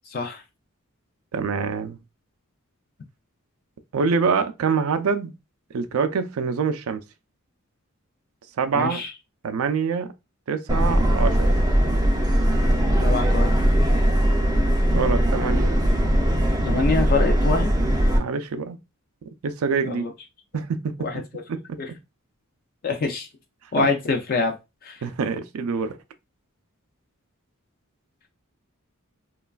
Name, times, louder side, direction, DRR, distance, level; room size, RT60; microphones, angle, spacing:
voice 1, 0.1-0.4 8.7-9.1 13.0-13.5 16.6-17.7 19.8-20.1 21.0-21.2 21.8-21.9 22.8-23.3 23.7-24.6 24.8-25.0, left 3 dB, 40° left, 0.4 m, -25 dB
voice 2, 1.3-2.0 3.9-5.4 5.7-7.0 8.6-9.0 9.4-10.1 10.5-11.6 14.9-15.7 18.1-18.8 19.4-20.1 20.5-20.9 21.5-21.8 23.8-23.9 25.0-26.0, right 5 dB, 80° right, 0.4 m, -25 dB
Subway metro underground, 10.7-18.2, equal, 20° right, 0.4 m, -20 dB
3.1 x 2.3 x 2.2 m
head